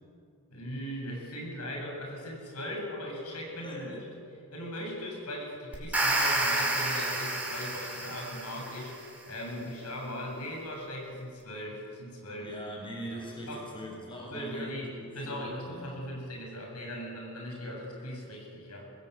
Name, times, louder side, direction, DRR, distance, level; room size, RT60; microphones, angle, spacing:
voice 1, 0.5-4.0 4.5-12.6 13.5-13.6 14.3-18.8, equal, 80° left, 0 dB, 7.9 m, -39 dB
voice 2, 3.6-4.0 12.4-16.0, equal, 25° left, -2 dB, 6.3 m, -41 dB
sound 1, 5.7-8.9, right 2 dB, 5° right, 5.3 m, -30 dB
25.5 x 20.0 x 8.4 m, 2.4 s
head